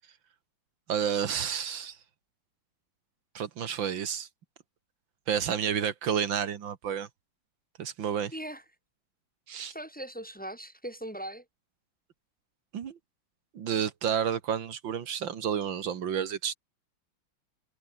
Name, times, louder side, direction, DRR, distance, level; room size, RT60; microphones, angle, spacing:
voice 1, 0.9-2.0 3.3-4.3 5.3-7.1 7.8-8.3 9.5-9.7 12.7-13.0 13.5-16.6, right 8 dB, 80° right, 2.2 m, -30 dB
voice 2, 8.3-8.6 9.7-11.4, right 1 dB, 5° left, 3.1 m, -39 dB
omnidirectional pair, 2.1 m